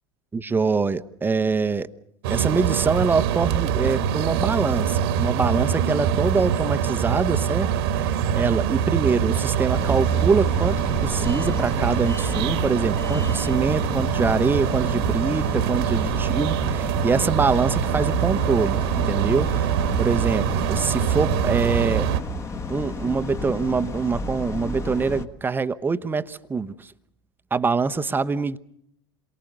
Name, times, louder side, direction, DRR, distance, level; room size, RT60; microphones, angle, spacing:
voice 1, 0.3-1.9 2.3-22.1 22.7-26.9 27.5-28.6, right 4 dB, 15° right, 0.9 m, -24 dB
sound 1, 2.2-22.2, right 9 dB, 55° right, 1.6 m, -24 dB
sound 2, 9.7-25.2, left 4 dB, 20° left, 1.3 m, -32 dB
28.5 x 23.5 x 6.8 m
figure-of-eight pair, 80°, 15 cm